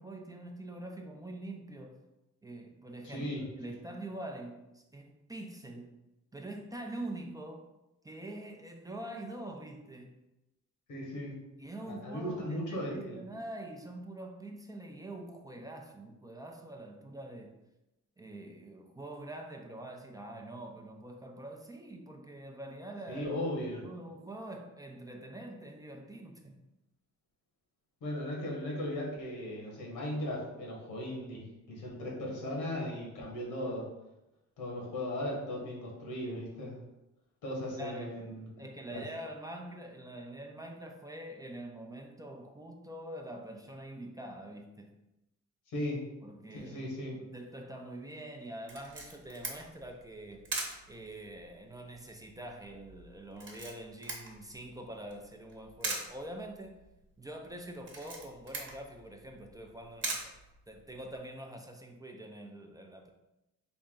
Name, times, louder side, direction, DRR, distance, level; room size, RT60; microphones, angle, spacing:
voice 1, 0.0-2.0 2.4-6.0 6.3-7.7 8.0-10.1 11.6-17.6 18.2-23.3 23.8-26.6 37.8-38.3 38.6-44.9 46.2-50.5 50.9-56.8 57.2-60.2 60.7-63.1, right 1 dB, 10° right, 2 dB, 0.4 m, -45 dB
voice 2, 3.0-3.7 10.9-11.4 11.8-13.2 23.1-23.9 28.0-33.9 34.6-36.8 37.4-38.5 38.9-39.0 45.7-46.1 46.5-47.2, left 1 dB, 90° left, -3 dB, 1.4 m, -37 dB
Camera, 48.7-61.2, right 3 dB, 40° right, 1.0 m, -43 dB
3.4 x 2.6 x 3.7 m, 0.95 s
cardioid pair, 90°, 30 cm